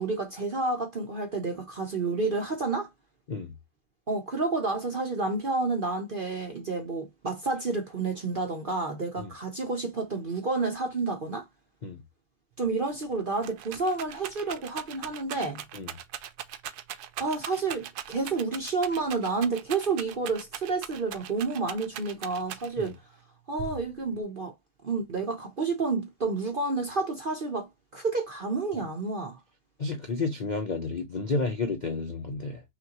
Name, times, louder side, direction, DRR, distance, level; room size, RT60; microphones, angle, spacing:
voice 1, 0.0-2.9 4.1-11.4 12.6-15.6 17.2-23.0 23.5-24.5 24.8-29.4, right 3 dB, 45° right, 0.7 m, -30 dB
Rattle, 12.6-12.7 13.0-23.0 23.6-24.2, right 10 dB, 75° right, 1.1 m, -40 dB
voice 2, 29.8-32.6, left 3 dB, 55° left, 0.5 m, -31 dB
5.9 x 2.5 x 2.8 m
omnidirectional pair, 1.8 m